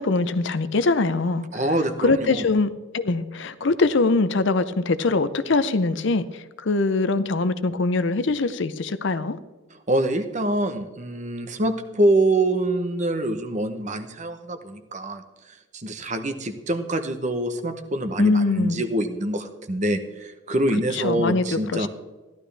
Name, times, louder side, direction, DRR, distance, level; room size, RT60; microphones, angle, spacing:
voice 1, 0.0-1.5 2.0-9.4 18.2-18.8 20.9-21.4 21.7-21.9, left 3 dB, 55° left, 13 dB, 0.6 m, -23 dB
voice 2, 1.5-2.4 9.9-15.2 15.7-21.9, right 1 dB, 35° right, 9 dB, 0.9 m, -25 dB
15.0 x 12.0 x 3.4 m, 1.2 s
head